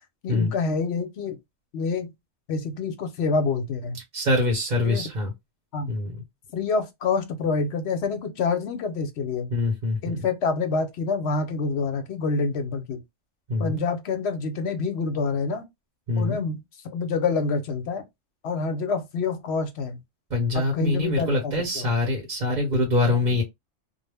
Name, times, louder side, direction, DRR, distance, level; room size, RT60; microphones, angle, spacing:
voice 1, 0.2-1.4 1.7-2.1 2.5-4.0 4.8-5.0 5.7-5.9 6.5-9.5 10.0-13.0 13.6-15.6 16.1-18.0 18.4-20.0 20.5-21.9 23.1-23.4, left 4 dB, 65° left, 0.8 m, -27 dB
voice 2, 4.1-5.3 5.9-6.1 9.5-10.2 13.5-13.8 16.1-16.4 20.3-23.4, left 2 dB, 45° right, 0.9 m, -24 dB
2.2 x 2.0 x 3.3 m
omnidirectional pair, 1.2 m